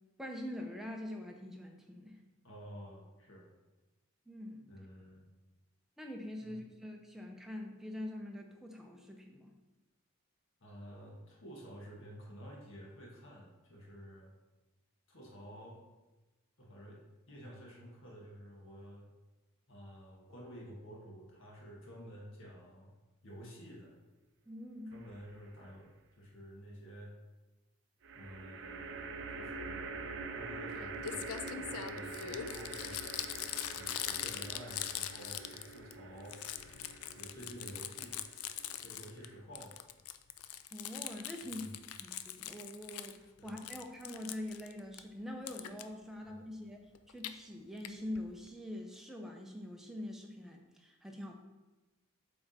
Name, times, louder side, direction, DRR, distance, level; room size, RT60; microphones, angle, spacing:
voice 1, 0.2-2.2 4.3-4.6 6.0-9.5 24.5-25.0 40.7-41.6 42.0-51.3, left 1 dB, ahead, 1 dB, 0.6 m, -44 dB
voice 2, 2.4-3.5 4.7-5.2 6.4-6.6 10.6-14.3 15.1-15.8 16.6-17.0 17.3-19.1 19.7-22.9 23.2-24.0 24.8-25.9 26.2-27.1 28.1-31.3 31.5-33.0 33.7-36.4 37.1-38.2 38.8-39.8 41.4-41.7 43.4-43.6 46.1-46.4, equal, 60° left, -2 dB, 1.4 m, -51 dB
sound 1, 24.9-25.6 28.0-39.4, right 4 dB, 55° right, 0.5 m, -46 dB
Crumpling crinkling, 30.7-30.8 31.0-35.9 36.2-39.3 39.6-43.2 43.5-45.0 45.5-45.8 47.0-47.3 47.8-47.9 48.2-48.3 48.5-48.6, left 11 dB, 80° left, 0.4 m, -42 dB
7.5 x 3.5 x 4.1 m, 1.1 s
head